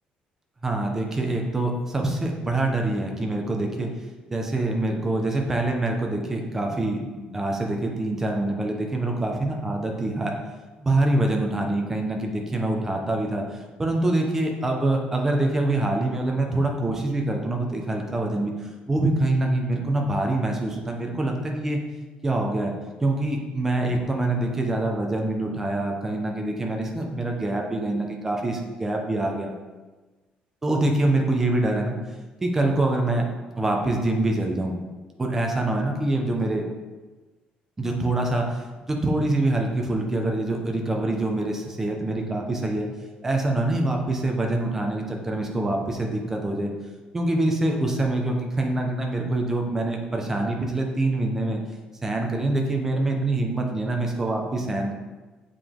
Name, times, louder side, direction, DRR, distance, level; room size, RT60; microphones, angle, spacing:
voice 1, 0.6-3.9 4.3-10.3 10.8-13.4 13.8-21.8 22.2-22.7 23.0-29.5 30.6-32.0 32.4-33.3 33.6-34.7 35.2-36.6 37.8-42.9 43.2-46.7 47.1-51.6 52.0-54.9, right 2 dB, 15° right, 1 dB, 0.9 m, -25 dB
7.4 x 4.9 x 3.8 m, 1.2 s
cardioid pair, 165°, 3 cm